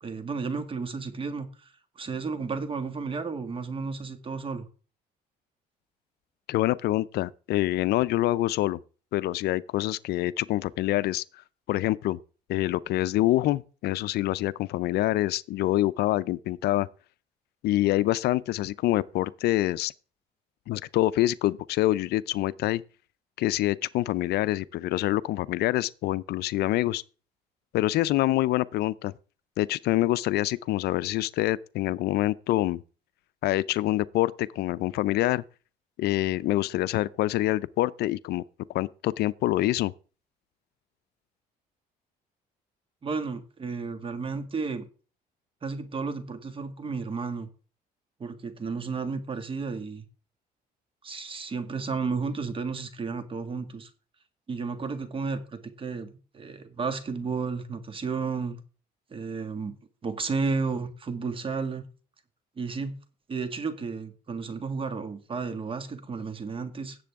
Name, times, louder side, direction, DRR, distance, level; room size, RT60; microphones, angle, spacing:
voice 1, 0.0-4.7 43.0-44.8 45.6-47.5 48.2-50.1 51.0-53.9 54.5-58.6 59.1-59.7 60.0-61.9 62.6-63.0 63.3-67.0, right 4 dB, 30° right, 1.9 m, -32 dB
voice 2, 6.5-8.8 9.1-11.2 11.7-12.2 12.5-16.9 17.6-19.9 20.7-22.8 23.4-27.0 27.7-29.1 29.6-32.8 33.4-35.4 36.0-38.4 38.7-39.9, left 16 dB, 70° left, 0.5 m, -26 dB
17.5 x 7.6 x 3.6 m
cardioid pair, 110°, 17 cm